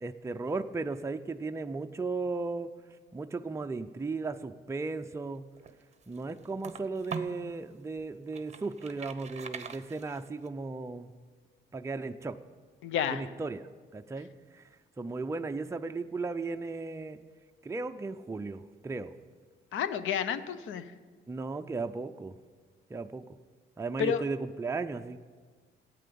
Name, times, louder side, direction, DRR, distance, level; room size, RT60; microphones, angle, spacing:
voice 1, 0.0-2.7 3.1-5.5 6.1-11.1 11.7-12.4 13.1-13.7 13.9-14.7 15.0-17.2 17.6-19.1 21.3-22.4 22.9-23.3 23.8-25.2, right 3 dB, 15° right, 7 dB, 0.5 m, -36 dB
sound 1, 5.3-7.5 8.0-10.5, right 5 dB, 35° right, 0.9 m, -43 dB
voice 2, 12.8-13.2 19.7-20.9 24.0-24.2, left 8 dB, 80° left, 13 dB, 0.8 m, -30 dB
13.5 x 9.2 x 6.9 m, 1.5 s
cardioid pair, 90°, 20 cm